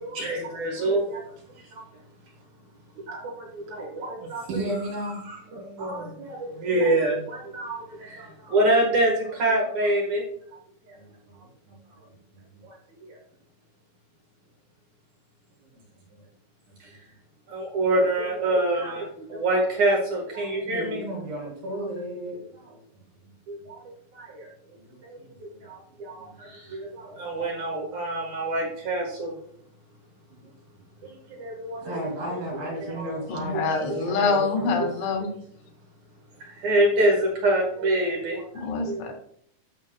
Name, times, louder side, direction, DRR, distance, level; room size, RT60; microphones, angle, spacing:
voice 1, 0.0-1.2 3.1-4.5 5.3-10.2 12.6-12.8 17.5-21.1 23.5-23.8 24.2-24.5 25.1-29.3 31.0-31.9 33.0-33.1 33.5-33.6 33.9-34.4 36.4-38.4 38.9-39.1, right 1 dB, 55° right, -1 dB, 2.2 m, -26 dB
voice 2, 4.5-5.2 7.0-7.2 10.9-11.8 12.3-12.6 15.7-15.8 16.1-16.2 20.7-22.4 22.7-22.8 23.2-23.3 24.7-25.6 26.2-26.3 27.3-27.4 30.3-30.4 31.8-34.9, right 1 dB, 80° right, -3 dB, 6.1 m, -34 dB
voice 3, 33.3-35.3 38.5-39.1, left 4 dB, 80° left, 2 dB, 4.4 m, -26 dB
12.0 x 7.1 x 2.3 m, 0.66 s
omnidirectional pair, 5.3 m